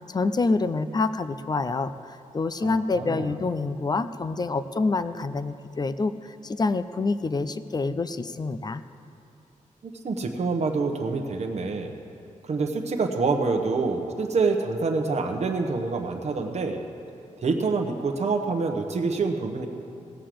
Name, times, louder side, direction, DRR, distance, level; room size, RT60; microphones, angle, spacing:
voice 1, 0.1-8.8, left 3 dB, 30° left, 13 dB, 0.4 m, -27 dB
voice 2, 2.6-3.3 9.8-11.9 12.4-16.8 17.4-19.7, right 4 dB, 55° right, 3 dB, 1.0 m, -26 dB
17.0 x 6.6 x 7.6 m, 2.6 s
wide cardioid pair, 125°, 14 cm